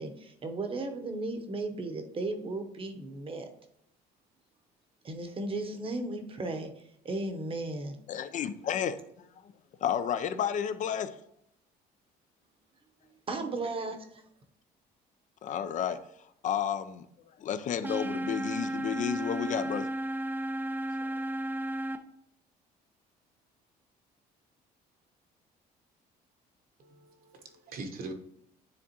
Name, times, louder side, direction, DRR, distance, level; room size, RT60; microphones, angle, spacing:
voice 1, 0.0-3.5 5.0-6.7 7.0-8.0 13.3-14.3, right 2 dB, 30° right, 6 dB, 0.9 m, -35 dB
voice 2, 8.1-9.0 9.8-11.1 15.4-16.0 16.4-17.0 17.4-19.9 21.0-21.2, left 8 dB, 50° left, 12 dB, 0.5 m, -31 dB
sound 1, 17.8-22.0, right 1 dB, 10° right, 0.5 m, -33 dB
voice 3, 26.8-28.1, right 2 dB, 60° right, 5 dB, 1.1 m, -42 dB
9.7 x 3.5 x 2.9 m, 0.75 s
cardioid pair, 110°, 17 cm